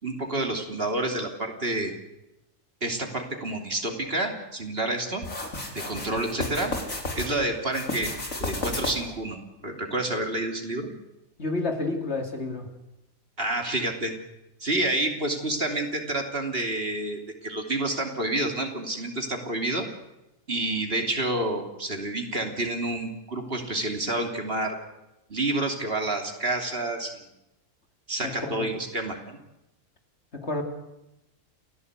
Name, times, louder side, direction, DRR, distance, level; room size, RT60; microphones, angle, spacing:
voice 1, 0.0-1.9 2.8-5.2 5.7-6.7 7.1-8.1 8.4-9.4 9.6-10.9 13.4-14.1 14.6-19.9 20.5-24.8 25.3-27.2 28.1-29.4, right 2 dB, 45° right, 4 dB, 3.3 m, -29 dB
sound 1, 5.2-7.3 7.7-9.2, left 2 dB, 85° left, 4.5 m, -32 dB
voice 2, 11.4-12.7 28.2-28.7 30.3-30.6, left 2 dB, 55° left, 4 dB, 3.1 m, -30 dB
29.0 x 16.5 x 8.2 m, 0.93 s
omnidirectional pair, 1.4 m